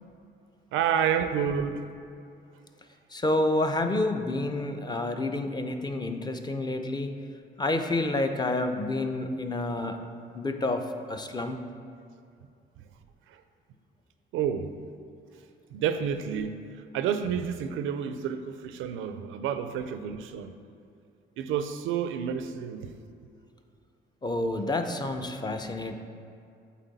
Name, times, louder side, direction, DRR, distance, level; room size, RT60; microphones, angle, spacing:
voice 1, 0.7-1.8 12.8-12.9 13.3-13.4 14.3-14.8 15.7-16.6 16.9-20.5 21.4-22.9, right 8 dB, 85° right, 9 dB, 0.4 m, -29 dB
voice 2, 3.1-7.1 7.6-10.0 10.3-11.6 24.2-25.9, left 2 dB, 20° left, 6 dB, 0.5 m, -29 dB
8.2 x 3.8 x 4.0 m, 2.5 s
cardioid pair, 90°, 20 cm